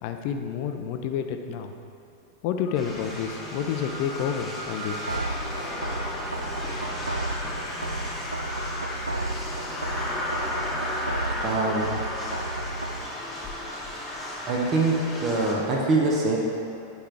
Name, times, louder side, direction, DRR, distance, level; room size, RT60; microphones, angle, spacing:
voice 1, 0.0-1.7 2.4-5.0, left 8 dB, 45° left, 6 dB, 0.5 m, -29 dB
sound 1, 2.7-15.5, left 1 dB, 5° left, 1.4 m, -34 dB
sound 2, 5.1-13.1, right 2 dB, 80° right, 0.3 m, -33 dB
voice 2, 11.4-11.9 14.5-16.4, right 2 dB, 30° right, -2 dB, 1.0 m, -24 dB
10.0 x 4.5 x 3.4 m, 2.7 s
figure-of-eight pair, 90°, 0 cm